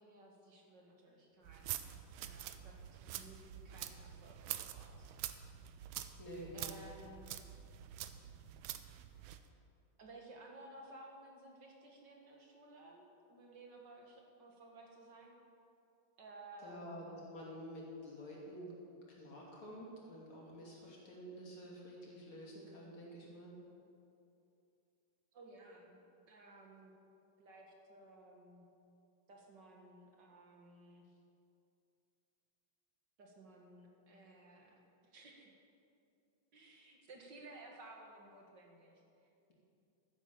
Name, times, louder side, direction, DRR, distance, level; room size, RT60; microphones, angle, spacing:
voice 1, 0.0-1.8 2.2-2.8 3.0-5.1 6.5-7.3 10.0-15.3 16.2-17.3 25.3-26.0 26.3-26.9 27.4-28.6 29.3-31.2 33.2-35.5 36.5-39.5, right 2 dB, 60° right, 0 dB, 2.3 m, -57 dB
sound 1, 1.4-9.5, right 11 dB, 85° right, 1.5 m, -46 dB
voice 2, 6.2-6.9 16.6-18.7 19.1-23.5, equal, 75° left, -4 dB, 3.7 m, -49 dB
12.0 x 10.0 x 7.1 m, 2.7 s
omnidirectional pair, 2.3 m